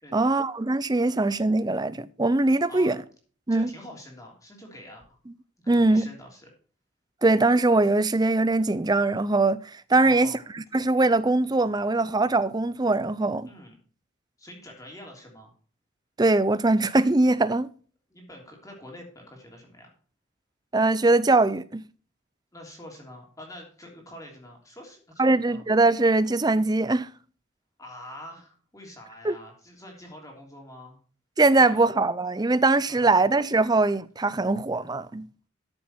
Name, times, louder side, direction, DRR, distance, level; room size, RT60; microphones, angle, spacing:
voice 1, 0.1-3.0 3.5-3.7 5.7-6.1 7.2-13.5 16.2-17.7 20.7-21.8 25.2-27.1 29.2-29.4 31.4-35.3, right 2 dB, 20° right, 0.5 m, -22 dB
voice 2, 3.5-5.2 5.6-6.5 10.0-10.4 13.4-13.8 14.4-15.5 18.1-19.9 22.5-25.7 27.8-31.0 31.5-31.8 32.9-33.2 33.6-33.7, left 1 dB, 15° left, 3.2 m, -45 dB
13.5 x 6.8 x 4.4 m
head